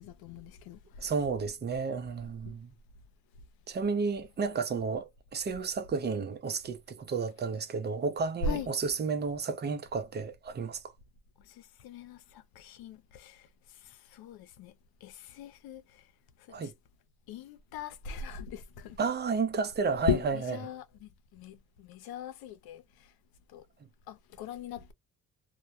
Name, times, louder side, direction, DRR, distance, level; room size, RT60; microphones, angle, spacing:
voice 1, 0.0-1.1 2.5-2.6 8.4-8.7 11.4-14.7 15.0-16.0 16.5-16.7 17.3-19.0 19.8-23.1 23.5-23.6 24.1-24.9, left 6 dB, 85° left, 0.6 m, -39 dB
voice 2, 1.0-2.7 3.7-10.8 16.5-16.7 19.0-20.6, right 5 dB, 30° right, 0.6 m, -32 dB
2.2 x 2.2 x 2.6 m
cardioid pair, 105°, 36 cm